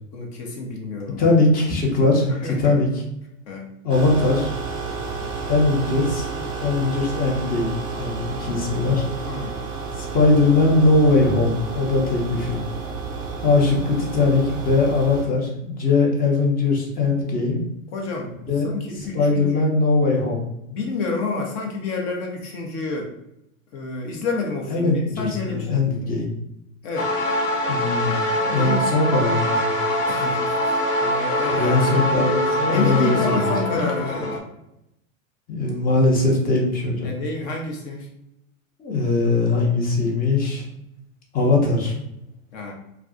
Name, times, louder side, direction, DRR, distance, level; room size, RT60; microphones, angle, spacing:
voice 1, 0.1-1.4 2.3-2.8 3.5-3.7 9.2-9.5 17.9-18.3 18.6-19.6 20.7-23.1 23.7-26.1 26.8-27.1 28.6-29.0 30.1-32.0 32.7-34.3 37.0-38.1 42.5-42.7, left 3 dB, 45° left, 0 dB, 0.9 m, -29 dB
voice 2, 1.2-2.9 3.8-4.5 5.5-6.3 6.6-9.0 10.0-12.6 13.4-17.6 18.5-18.7 19.1-20.4 24.7-26.3 27.7-29.7 31.5-33.5 33.7-33.8 35.5-37.1 38.8-40.6 41.3-41.9, left 3 dB, 20° left, -1 dB, 0.8 m, -20 dB
sound 1, 3.9-15.2, right 4 dB, 15° right, 0.3 m, -31 dB
sound 2, 27.0-34.4, left 1 dB, 70° left, 0.8 m, -23 dB
2.4 x 2.3 x 3.7 m, 0.83 s
hypercardioid pair, 110°, 41 cm